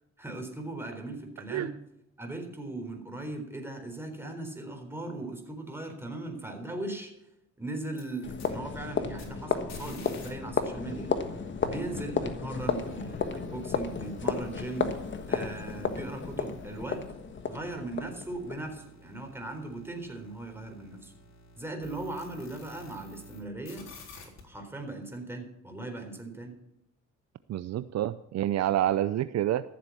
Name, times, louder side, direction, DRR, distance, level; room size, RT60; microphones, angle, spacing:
voice 1, 0.2-1.7 2.2-7.1 7.6-11.1 11.6-14.9 15.3-17.1 17.5-21.1 21.6-23.9 24.2-26.5, right 2 dB, 10° right, 3 dB, 4.0 m, -38 dB
sound 1, 7.8-10.3 10.5-23.4 23.6-24.4, left 2 dB, 60° left, 3.8 m, -53 dB
sound 2, 8.2-18.8, left 5 dB, 40° left, 1.4 m, -33 dB
voice 2, 27.5-29.6, right 12 dB, 60° right, 14 dB, 0.6 m, -28 dB
14.0 x 7.7 x 7.2 m, 0.83 s
cardioid pair, 90°, 30 cm